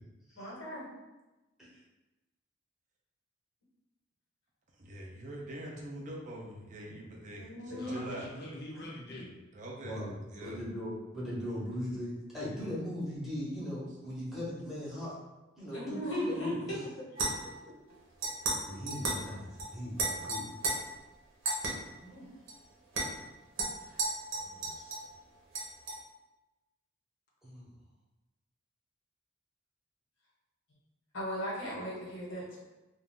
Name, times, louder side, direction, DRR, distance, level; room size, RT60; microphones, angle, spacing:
voice 1, 0.3-0.9 7.3-8.0 8.3-8.5 15.7-16.6 22.0-22.3 23.9-24.0 31.1-32.6, equal, 80° left, -5 dB, 1.1 m, -38 dB
voice 2, 4.8-7.5 7.9-8.3 9.5-10.0 10.3-10.6 14.0-14.2 15.6-15.7, right 1 dB, 40° right, -1 dB, 0.4 m, -43 dB
voice 3, 7.7-9.4 24.3-24.9, left 1 dB, 55° left, -3 dB, 0.7 m, -46 dB
voice 4, 9.8-10.1 10.4-15.1 15.6-16.6 18.7-20.5 27.4-27.7, left 1 dB, ahead, -8 dB, 0.8 m, -39 dB
sound 1, 17.2-17.6 18.2-18.6 18.9-19.2 19.6-19.7 20.0-20.7 21.5-21.7 22.5-22.6 22.9-23.1 23.6-25.1 25.5-26.0, right 2 dB, 80° right, 0.7 m, -33 dB
2.4 x 2.3 x 3.5 m, 1.1 s
head